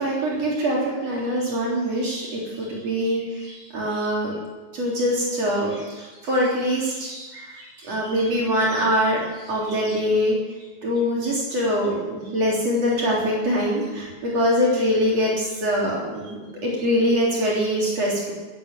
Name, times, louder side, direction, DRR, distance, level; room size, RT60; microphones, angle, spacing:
voice 1, 0.0-4.3 4.7-10.4 10.8-18.3, equal, 55° right, -4 dB, 4.6 m, -23 dB
19.5 x 9.0 x 7.5 m, 1.3 s
omnidirectional pair, 3.4 m